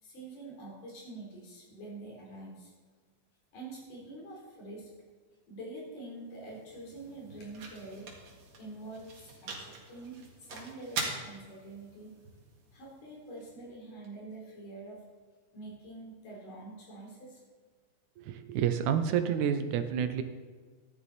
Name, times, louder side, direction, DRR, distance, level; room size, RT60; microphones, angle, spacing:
voice 1, 0.0-2.7 3.5-4.9 5.5-8.1 8.6-12.1 12.7-15.0 15.5-17.4, right 2 dB, 90° left, -3 dB, 5.5 m, -46 dB
sound 1, 6.0-14.1, right 3 dB, 60° right, 3.0 m, -44 dB
voice 2, 18.2-20.2, right 8 dB, 75° right, 9 dB, 2.3 m, -29 dB
14.5 x 11.0 x 4.2 m, 1.5 s
omnidirectional pair, 3.6 m